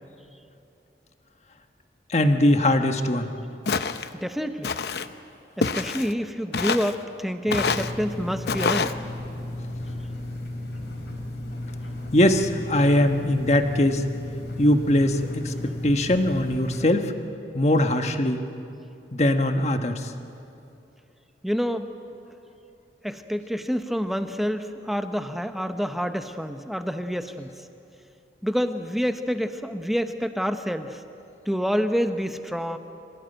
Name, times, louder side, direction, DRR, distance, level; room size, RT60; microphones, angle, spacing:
voice 1, 2.1-3.3 12.1-14.0 14.6-15.5 15.8-17.1 17.5-18.4 19.1-20.1, left 1 dB, 40° left, 6 dB, 1.3 m, -21 dB
Walk footsteps, 3.7-4.1 4.6-5.1 5.6-6.1 6.5-7.0 7.5-7.9 8.5-8.9, left 4 dB, 70° left, 0.8 m, -26 dB
voice 2, 4.1-4.7 5.6-9.0 21.4-21.9 23.0-27.5 28.4-31.0 31.5-32.8, equal, ahead, 7 dB, 0.9 m, -27 dB
sound 1, 7.5-16.8, left 1 dB, 85° left, 4.3 m, -34 dB
26.5 x 16.5 x 9.1 m, 2.7 s
head